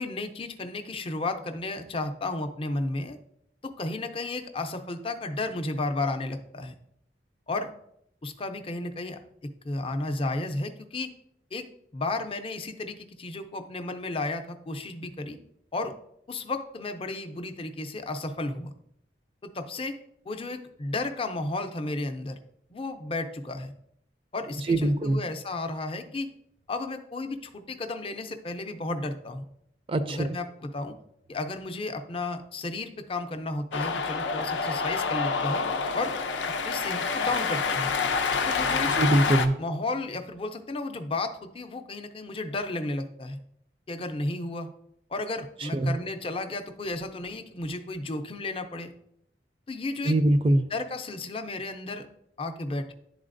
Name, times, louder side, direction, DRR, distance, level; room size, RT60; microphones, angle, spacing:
voice 1, 0.0-3.2 3.6-6.7 7.5-7.7 8.2-9.2 9.6-11.1 11.5-11.7 11.9-15.4 15.7-15.9 16.3-18.7 19.4-19.9 20.3-22.4 22.7-23.7 24.3-26.3 26.7-29.5 30.1-31.0 31.3-35.6 35.9-36.1 36.5-37.9 38.5-38.9 39.6-43.4 43.9-44.7 45.1-48.9 49.7-50.1 50.7-52.1 52.4-52.9, left 2 dB, 30° left, 7 dB, 0.5 m, -33 dB
voice 2, 24.7-25.2 29.9-30.3 38.9-39.6 45.6-46.0 50.0-50.7, right 1 dB, 30° right, 9 dB, 0.4 m, -23 dB
Cheering, 33.7-39.5, left 5 dB, 90° left, 0.6 m, -27 dB
11.0 x 4.0 x 2.5 m, 0.74 s
head